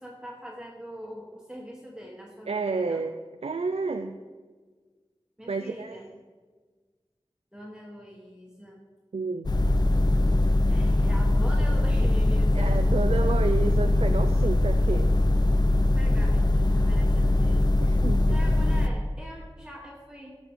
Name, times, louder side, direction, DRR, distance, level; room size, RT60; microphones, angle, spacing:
voice 1, 0.0-3.0 5.4-6.1 7.5-8.8 10.7-12.8 15.8-17.8 18.3-20.4, equal, 5° right, -3 dB, 1.4 m, -42 dB
voice 2, 2.5-3.1 3.4-4.2 5.5-6.0 9.1-9.5 12.6-15.1 17.8-18.4, right 4 dB, 85° right, 7 dB, 0.4 m, -30 dB
sound 1, 9.4-18.9, left 1 dB, 45° left, 0.6 m, -22 dB
14.0 x 6.3 x 3.6 m, 1.4 s
wide cardioid pair, 50°, 10 cm